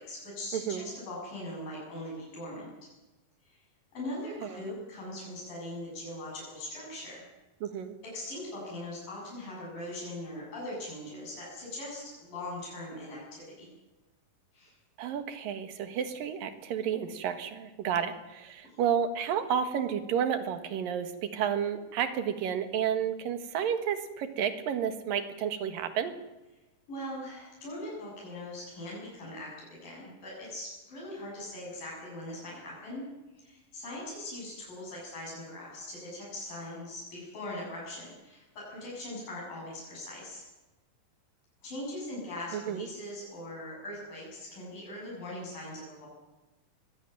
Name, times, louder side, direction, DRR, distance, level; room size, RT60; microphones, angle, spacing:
voice 1, 0.0-2.7 3.5-3.6 3.9-7.2 8.1-13.7 14.5-14.7 18.7-18.8 26.9-33.0 33.4-40.5 41.6-46.1, left 1 dB, 75° left, -5 dB, 9.3 m, -41 dB
voice 2, 0.5-0.9 4.1-4.7 7.6-7.9 15.0-26.1 42.5-42.9, right 8 dB, 85° right, 9 dB, 3.3 m, -31 dB
22.0 x 15.5 x 9.1 m, 1.1 s
omnidirectional pair, 4.0 m